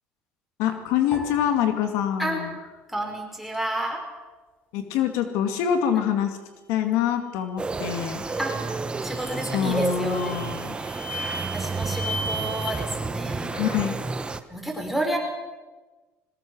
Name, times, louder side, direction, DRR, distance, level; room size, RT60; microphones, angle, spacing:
voice 1, 0.6-2.6 4.7-6.4 6.7-8.2 9.5-10.8 13.5-14.0, left 9 dB, 80° left, 6 dB, 2.3 m, -25 dB
sound 1, 1.1-3.6 3.9-4.8 5.4-5.8, left 1 dB, 35° left, 6.9 m, -45 dB
voice 2, 2.9-4.0 8.4-8.6 9.0-10.6 11.5-13.5 14.5-15.2, right 1 dB, 5° right, 1 dB, 5.3 m, -30 dB
sound 2, 7.6-14.4, right 3 dB, 20° right, 1.2 m, -30 dB
sound 3, 9.1-9.6 10.1-12.7, equal, 60° left, 4.4 m, -35 dB
21.5 x 19.0 x 6.3 m, 1.2 s
cardioid pair, 105°, 5 cm